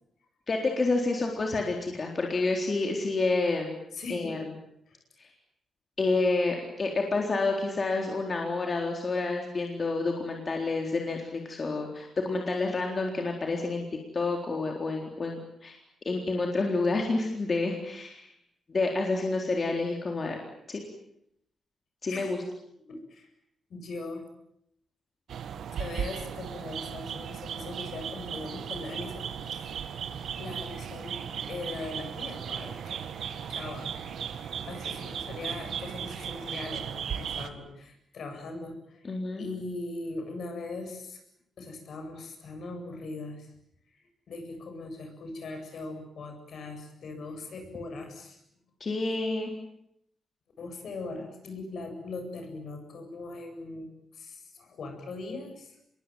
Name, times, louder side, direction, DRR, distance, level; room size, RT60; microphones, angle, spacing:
voice 1, 0.5-3.8 4.1-4.4 5.2-5.3 6.0-13.8 14.1-15.8 16.1-18.3 18.7-20.4 20.7-20.8 22.0-22.4 39.0-39.5 48.8-49.5, left 3 dB, 35° left, 2 dB, 4.0 m, -29 dB
voice 2, 3.9-4.4 4.9-5.0 22.1-22.4 22.9-23.3 23.7-24.2 25.8-29.8 30.4-33.0 33.5-34.0 34.7-41.2 41.6-43.5 44.3-48.4 50.6-55.8, left 3 dB, 65° left, 5 dB, 7.9 m, -40 dB
sound 1, 25.3-37.5, right 8 dB, 75° right, 1.8 m, -36 dB
27.0 x 22.0 x 9.3 m, 0.75 s
wide cardioid pair, 125°, 0 cm